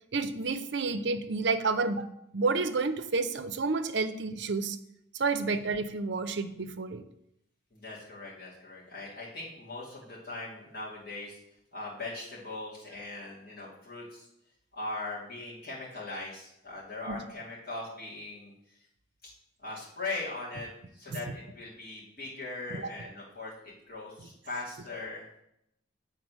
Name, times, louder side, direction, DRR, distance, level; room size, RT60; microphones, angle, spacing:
voice 1, 0.1-2.0 2.3-4.8 5.1-7.0 17.1-17.2 21.1-21.2 22.7-23.1, right 4 dB, 60° right, 10 dB, 0.5 m, -30 dB
voice 2, 7.7-11.4 11.7-14.2 14.7-18.5 19.2-19.3 19.6-20.7 20.9-25.2, left 2 dB, 50° left, -7 dB, 2.5 m, -40 dB
7.6 x 3.9 x 6.2 m, 0.79 s
head